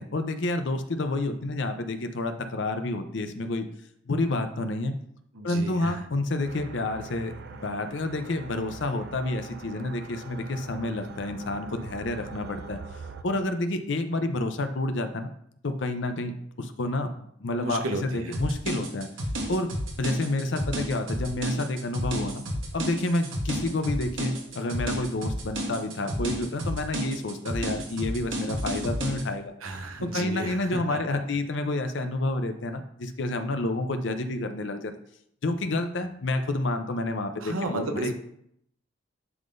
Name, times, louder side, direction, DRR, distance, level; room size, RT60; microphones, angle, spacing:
voice 1, 0.0-3.7 4.1-4.9 5.4-12.8 13.2-15.3 15.6-19.1 19.5-19.7 20.0-22.4 22.7-29.5 30.0-34.9 35.4-38.1, left 2 dB, 60° left, 7 dB, 0.6 m, -29 dB
voice 2, 5.3-6.1 17.6-18.4 29.6-31.2 37.4-38.1, right 2 dB, 85° right, 5 dB, 0.9 m, -33 dB
sound 1, 6.5-13.2, right 4 dB, 50° right, 0.4 m, -43 dB
sound 2, 18.3-29.2, equal, 65° right, 1.1 m, -31 dB
11.0 x 3.7 x 2.6 m, 0.70 s
head